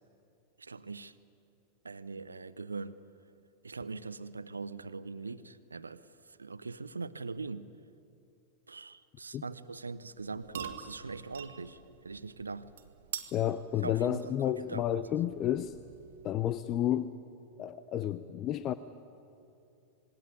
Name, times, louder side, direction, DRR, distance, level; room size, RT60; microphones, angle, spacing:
voice 1, 0.6-1.1 1.8-3.0 3.6-7.7 8.7-12.7 13.8-14.8, right 4 dB, 75° right, 0.8 m, -42 dB
sound 1, 10.1-16.5, right 8 dB, 60° right, 1.7 m, -47 dB
voice 2, 13.3-15.8 16.2-17.2 17.6-18.7, left 11 dB, 35° left, 0.7 m, -31 dB
26.0 x 21.5 x 9.6 m
figure-of-eight pair, 90°, 0 cm